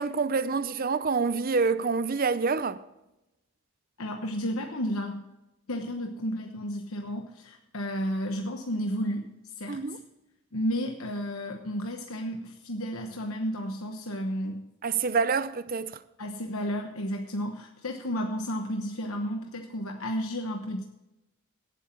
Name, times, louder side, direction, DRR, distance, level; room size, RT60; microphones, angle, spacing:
voice 1, 0.0-2.8 9.7-10.0 14.8-16.0, right 4 dB, 40° right, 0.6 m, -27 dB
voice 2, 4.0-5.2 5.7-10.0 10.5-14.7 16.2-20.8, equal, 75° left, 1.1 m, -32 dB
17.5 x 8.1 x 4.5 m
head